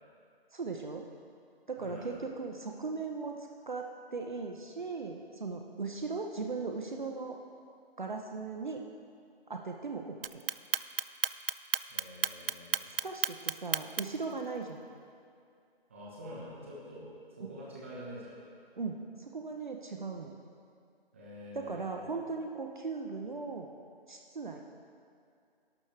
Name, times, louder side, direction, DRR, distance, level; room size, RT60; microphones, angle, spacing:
voice 1, 0.5-1.1 1.7-3.4 3.7-7.4 8.0-8.8 9.5-10.4 13.0-14.8 18.8-20.3 21.5-23.7 24.1-24.6, right 4 dB, 50° right, 3 dB, 1.0 m, -38 dB
voice 2, 1.8-2.2 11.9-12.9 15.9-17.1 17.4-18.4 21.1-22.1, equal, 15° right, -6 dB, 1.3 m, -46 dB
Clock, 10.2-14.2, right 7 dB, 65° right, 0.5 m, -31 dB
19.5 x 11.5 x 3.4 m, 2.4 s
hypercardioid pair, 175°, 31 cm